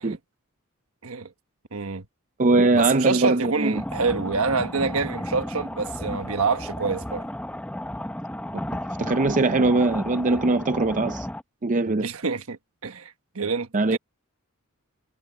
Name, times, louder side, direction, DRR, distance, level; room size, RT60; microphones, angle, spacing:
voice 1, 1.7-2.1 2.7-7.3 11.9-14.0, right 4 dB, 65° right, 1.3 m, -27 dB
voice 2, 2.4-3.8 9.0-11.3 11.6-12.1 13.7-14.0, right 3 dB, 35° right, 0.6 m, -21 dB
sound 1, 3.7-11.4, left 1 dB, 5° left, 1.1 m, -33 dB
head